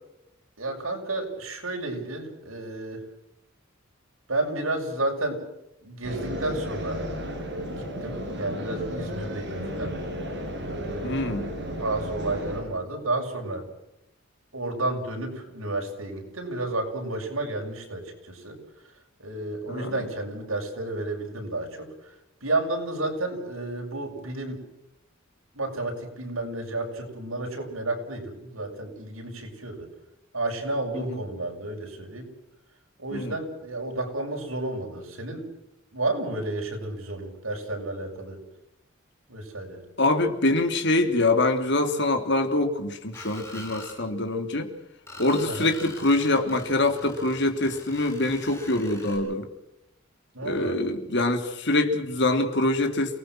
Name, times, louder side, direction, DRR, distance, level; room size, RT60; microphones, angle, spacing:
voice 1, 0.6-3.0 4.3-5.4 5.8-7.1 7.8-9.9 10.6-11.1 11.7-13.7 14.5-18.6 18.8-18.9 19.2-24.6 25.5-29.9 30.3-32.3 33.0-35.5 35.9-38.4 39.3-39.8 45.5-45.7 50.3-50.8, right 2 dB, 90° right, 2 dB, 7.0 m, -31 dB
sound 1, 6.0-12.6, equal, 55° right, 7.9 m, -33 dB
voice 2, 11.0-11.5 19.7-19.9 30.9-31.2 33.1-33.4 40.0-44.7 45.2-49.5 50.4-53.2, left 2 dB, 55° left, 6 dB, 3.2 m, -24 dB
Screech, 43.1-44.0 45.1-49.2, left 1 dB, 15° left, 7.9 m, -43 dB
29.0 x 19.0 x 6.3 m, 0.89 s
head